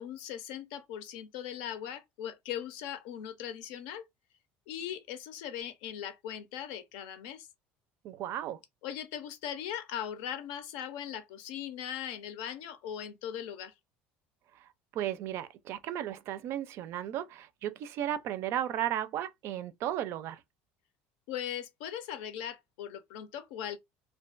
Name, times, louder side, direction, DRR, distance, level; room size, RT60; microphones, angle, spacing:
voice 1, 0.0-4.0 4.7-7.5 8.8-13.7 21.3-23.8, left 10 dB, 80° left, 0.6 m, -39 dB
voice 2, 8.0-8.6 14.6-20.4, right 11 dB, 60° right, 0.4 m, -35 dB
2.4 x 2.2 x 2.4 m
supercardioid pair, 105°, 5 cm